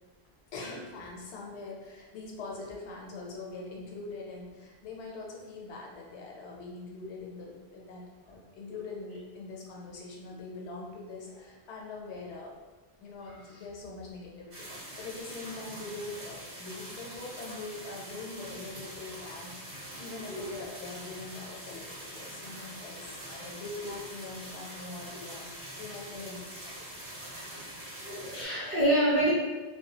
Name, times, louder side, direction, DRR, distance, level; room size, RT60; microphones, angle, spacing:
voice 1, 0.5-12.5 13.0-27.0, left 3 dB, 90° left, -1 dB, 0.9 m, -43 dB
sound 1, 14.5-28.4, right 1 dB, 45° right, 0.8 m, -44 dB
voice 2, 28.0-29.3, right 1 dB, 15° right, -10 dB, 0.4 m, -27 dB
2.3 x 2.2 x 2.8 m, 1.2 s
omnidirectional pair, 1.1 m